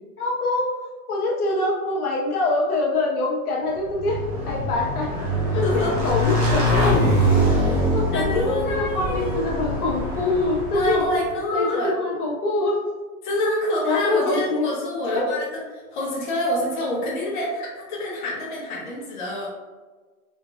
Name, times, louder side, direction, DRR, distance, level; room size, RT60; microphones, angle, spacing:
voice 1, 0.2-0.7 1.1-5.1 5.5-7.0 7.5-11.0 11.5-12.8 13.8-14.7 15.1-15.2, left 2 dB, 85° left, -3 dB, 1.2 m, -24 dB
Motorcycle / Engine, 3.8-11.2, equal, 25° right, 0.8 m, -23 dB
voice 2, 5.5-5.9 8.1-9.6 10.7-11.9 13.2-15.5 15.9-19.5, left 1 dB, 35° left, -5 dB, 0.9 m, -26 dB
3.6 x 3.5 x 2.4 m, 1.3 s
hypercardioid pair, 170°, 43 cm